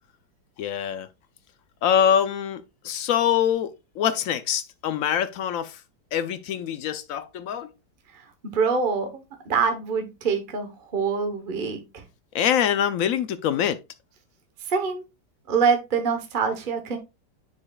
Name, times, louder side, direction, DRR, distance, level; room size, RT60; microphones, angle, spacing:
voice 1, 0.6-1.1 1.8-5.8 6.1-7.7 12.3-13.8, left 9 dB, 65° left, 0.9 m, -24 dB
voice 2, 8.1-12.0 14.6-15.0 15.5-17.0, right 5 dB, 35° right, 1.1 m, -25 dB
9.6 x 4.9 x 2.3 m
omnidirectional pair, 1.9 m